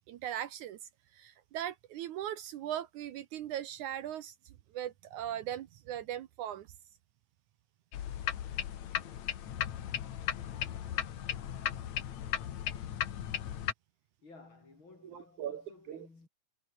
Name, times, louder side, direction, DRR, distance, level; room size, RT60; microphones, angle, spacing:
voice 1, 0.1-0.8 1.1-4.3 4.7-6.7 10.2-10.3 15.1-15.6 15.9-16.1, right 11 dB, 70° right, 2.3 m, -39 dB
sound 1, 7.9-13.7, left 10 dB, 60° left, 2.7 m, -36 dB
voice 2, 14.2-16.3, left 3 dB, 35° left, 5.2 m, -55 dB
omnidirectional pair, 3.8 m